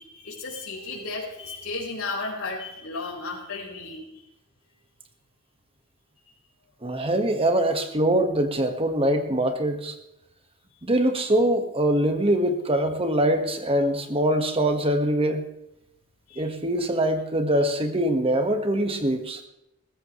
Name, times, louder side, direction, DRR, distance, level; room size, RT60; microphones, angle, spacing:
voice 1, 0.0-4.3 16.3-16.5 17.5-17.6, left 3 dB, 85° left, -3 dB, 4.6 m, -34 dB
voice 2, 6.8-9.9 10.8-15.4 16.4-19.4, right 1 dB, 25° right, 6 dB, 1.5 m, -23 dB
20.0 x 15.5 x 3.2 m, 0.84 s
head